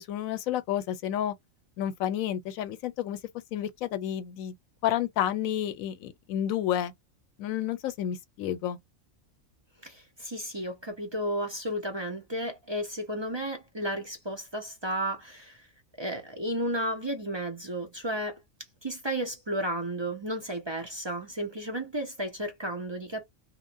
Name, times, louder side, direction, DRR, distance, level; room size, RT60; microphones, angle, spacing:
voice 1, 0.0-1.3 1.8-3.2 3.5-4.5 4.8-6.9 7.4-8.8, left 11 dB, 85° left, 1.0 m, -30 dB
voice 2, 9.8-15.6 16.0-18.4 18.8-23.2, right 1 dB, 35° right, 0.4 m, -33 dB
2.9 x 2.1 x 2.5 m
omnidirectional pair, 1.4 m